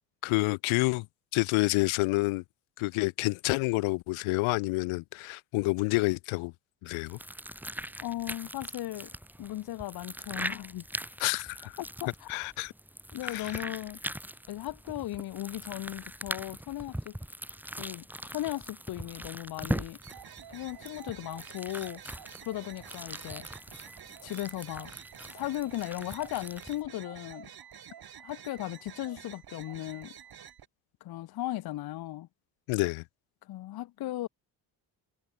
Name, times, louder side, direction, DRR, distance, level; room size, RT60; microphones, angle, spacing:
voice 1, 0.2-1.1 1.3-2.4 2.8-6.5 6.8-7.2 11.2-11.7 12.3-12.7 13.2-13.6 32.7-33.0, left 24 dB, 85° left, 1.0 m, -28 dB
sound 1, 6.9-26.8, right 1 dB, 5° right, 5.0 m, -41 dB
voice 2, 8.0-9.1 9.4-10.8 11.8-12.4 13.1-14.0 14.5-17.2 17.8-20.0 20.5-23.5 24.2-24.9 25.3-27.5 28.2-30.1 31.0-32.3 33.4-34.3, left 15 dB, 50° left, 0.7 m, -37 dB
sound 2, 20.0-30.7, right 9 dB, 50° right, 3.1 m, -49 dB
supercardioid pair, 75°, 47 cm